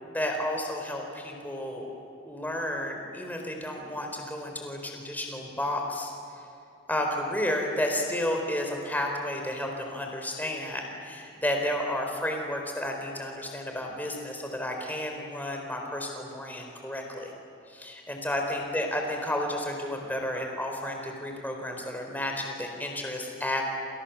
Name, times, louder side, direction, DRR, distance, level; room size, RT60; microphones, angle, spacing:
voice 1, 0.1-1.9 2.2-6.1 6.9-17.3 17.7-23.6, left 1 dB, 10° left, 2 dB, 4.3 m, -32 dB
29.0 x 28.5 x 7.3 m, 2.8 s
head